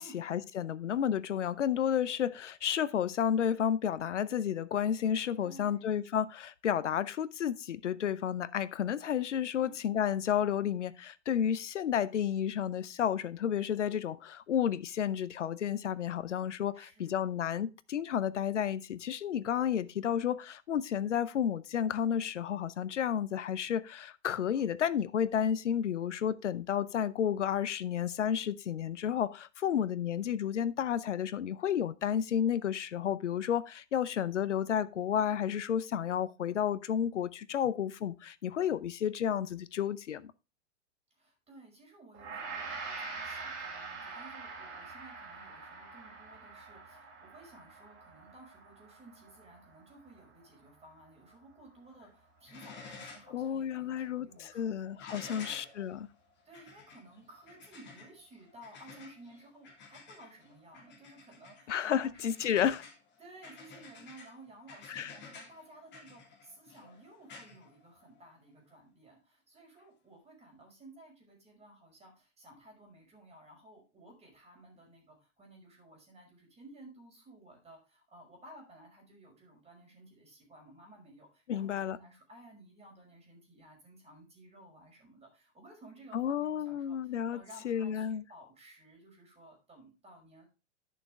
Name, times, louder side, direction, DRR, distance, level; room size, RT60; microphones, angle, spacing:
voice 1, 0.0-40.3 53.3-56.1 61.7-62.8 64.9-65.1 81.5-82.0 86.1-88.2, left 9 dB, 80° left, 0.7 m, -31 dB
voice 2, 5.4-5.9 9.5-9.8 16.7-17.3 24.5-24.7 29.6-29.9 41.1-55.7 56.4-62.7 63.2-90.5, right 1 dB, 15° right, 5.5 m, -55 dB
Gong, 42.1-51.5, right 4 dB, 40° right, 4.4 m, -45 dB
sound 1, 51.9-52.2 52.4-53.4 53.7-53.8 55.0-68.4 69.8-69.9, left 4 dB, 30° left, 2.6 m, -52 dB
11.0 x 6.8 x 3.5 m
hypercardioid pair, 100°, 36 cm